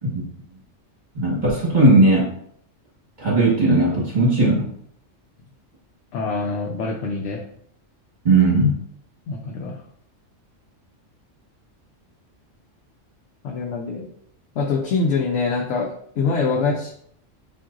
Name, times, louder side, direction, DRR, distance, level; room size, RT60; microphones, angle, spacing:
voice 1, 1.1-2.3 3.2-4.6 8.2-8.8, right 2 dB, 35° right, -5 dB, 1.4 m, -17 dB
voice 2, 6.1-7.4 9.3-9.8 13.4-14.1 14.5-16.9, left 4 dB, 70° left, 0 dB, 0.9 m, -24 dB
7.3 x 2.6 x 2.5 m, 0.66 s
omnidirectional pair, 1.3 m